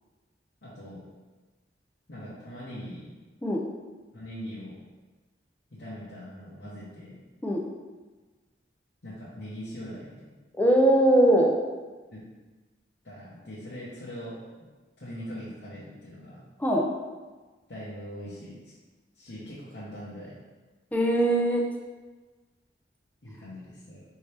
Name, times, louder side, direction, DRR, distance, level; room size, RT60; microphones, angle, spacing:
voice 1, 0.6-1.1 2.1-3.1 4.1-4.8 5.7-7.2 9.0-10.3 12.1-12.2 13.0-14.4 15.0-16.4 17.7-18.7 19.1-20.4 23.2-24.0, equal, 65° left, -10 dB, 0.9 m, -41 dB
voice 2, 10.6-11.5 16.6-16.9 20.9-21.6, right 1 dB, 10° left, -1 dB, 0.4 m, -21 dB
4.4 x 2.8 x 3.3 m, 1.3 s
head